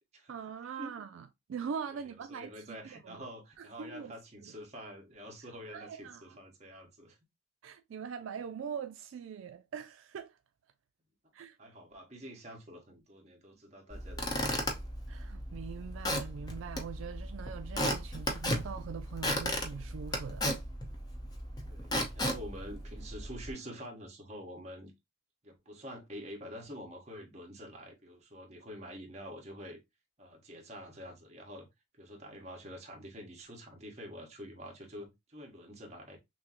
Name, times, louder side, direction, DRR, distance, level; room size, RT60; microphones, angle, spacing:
voice 1, 0.3-3.3 3.6-4.1 4.4-4.5 5.7-6.4 7.6-10.4 11.3-11.6 15.1-20.5, right 6 dB, 75° right, 0.3 m, -42 dB
voice 2, 2.3-7.2 11.6-14.8 21.7-24.9 25.4-29.8 30.2-31.7 32.0-36.2, equal, 35° right, 1.3 m, -47 dB
Squeak / Wood, 13.9-23.5, equal, 20° left, 0.7 m, -35 dB
6.1 x 2.1 x 2.9 m
head